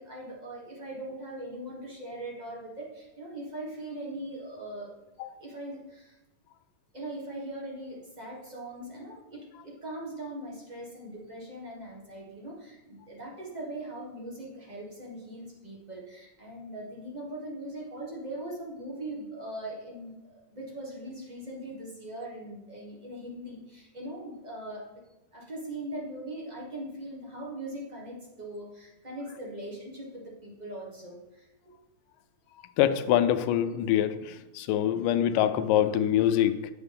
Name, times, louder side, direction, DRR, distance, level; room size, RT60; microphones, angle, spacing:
voice 1, 0.0-4.9 5.4-6.2 6.9-25.0 25.3-31.7, right 1 dB, 25° right, -3 dB, 0.9 m, -40 dB
voice 2, 32.8-36.6, left 11 dB, 85° left, 11 dB, 2.2 m, -24 dB
9.5 x 8.0 x 3.5 m, 1.0 s
omnidirectional pair, 3.7 m